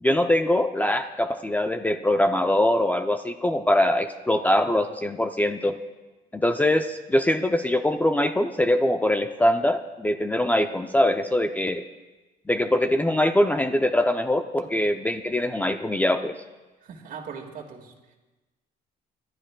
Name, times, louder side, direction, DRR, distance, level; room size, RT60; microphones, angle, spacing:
voice 1, 0.0-5.8 6.3-11.8 12.5-16.4, left 1 dB, 10° left, 7 dB, 0.5 m, -23 dB
voice 2, 16.8-18.2, right 6 dB, 55° right, 4 dB, 1.9 m, -40 dB
29.0 x 12.0 x 2.2 m, 1.2 s
cardioid pair, 110°, 17 cm